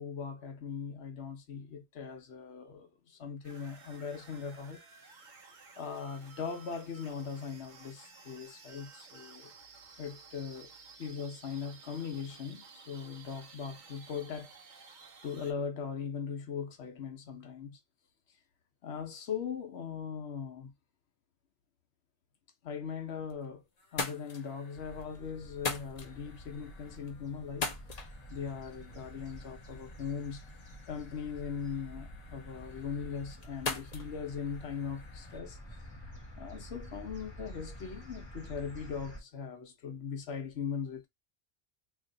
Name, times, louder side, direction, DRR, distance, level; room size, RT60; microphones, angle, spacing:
voice 1, 0.0-4.8 5.8-9.5 10.0-10.7 11.0-14.5 15.2-17.8 18.8-20.7 22.6-23.6 23.9-27.7 28.3-30.4 30.9-35.9 36.4-41.1, left 6 dB, 75° left, 1.0 m, -40 dB
sound 1, 3.4-15.5, right 5 dB, 50° right, 0.9 m, -54 dB
sound 2, 22.9-23.5 23.8-35.4, left 4 dB, 45° left, 0.8 m, -43 dB
sound 3, 24.7-39.2, equal, 25° left, 1.3 m, -49 dB
3.0 x 2.6 x 3.8 m
omnidirectional pair, 1.1 m